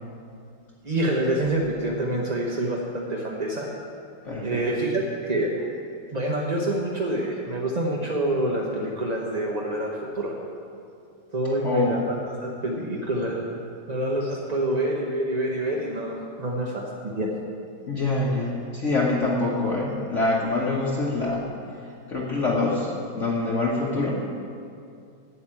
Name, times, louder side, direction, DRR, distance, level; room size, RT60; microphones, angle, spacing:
voice 1, 0.8-3.7 4.4-5.5 6.1-10.3 11.3-13.4 13.9-17.3, right 1 dB, 35° right, -2 dB, 0.6 m, -27 dB
voice 2, 4.2-4.6 11.6-12.0 17.9-21.5 22.1-24.3, left 2 dB, 45° left, -3 dB, 1.2 m, -25 dB
8.0 x 7.9 x 8.7 m, 2.5 s
omnidirectional pair, 2.0 m